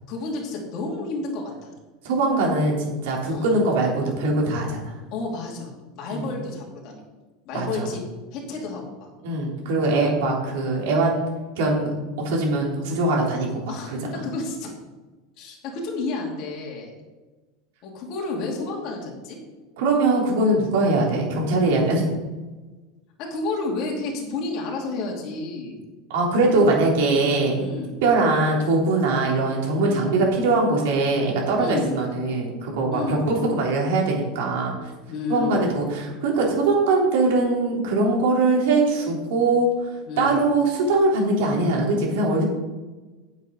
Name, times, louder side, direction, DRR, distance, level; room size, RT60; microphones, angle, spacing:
voice 1, 0.1-1.7 3.3-3.5 5.1-7.0 7.4-8.0 8.3-9.1 12.7-12.9 13.7-14.7 15.4-16.9 17.8-19.4 20.9-21.2 23.2-25.8 27.5-28.0 29.8-30.1 31.6-31.9 32.9-33.2 35.1-35.5 40.1-40.4, left 3 dB, 45° left, -1 dB, 2.6 m, -31 dB
voice 2, 2.0-2.8 3.0-4.9 6.1-6.3 7.5-7.9 9.2-11.2 11.6-13.7 14.1-14.2 19.8-22.1 26.1-27.8 28.0-34.9 35.3-39.7 40.2-42.4, right 2 dB, 70° right, -2 dB, 3.5 m, -22 dB
9.3 x 7.5 x 5.4 m, 1.2 s
supercardioid pair, 160°, 0 cm